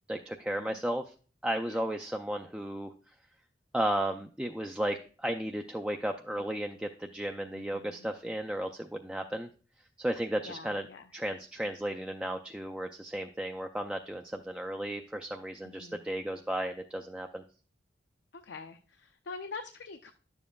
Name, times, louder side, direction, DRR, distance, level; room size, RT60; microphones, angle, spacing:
voice 1, 0.1-1.1 1.4-2.9 3.7-9.5 10.0-10.9 11.1-17.4, right 1 dB, 5° right, 4 dB, 0.3 m, -34 dB
voice 2, 7.5-8.1 10.4-11.1 15.6-16.0 18.3-20.1, left 4 dB, 75° left, 7 dB, 0.5 m, -45 dB
11.0 x 7.2 x 2.3 m, 0.39 s
head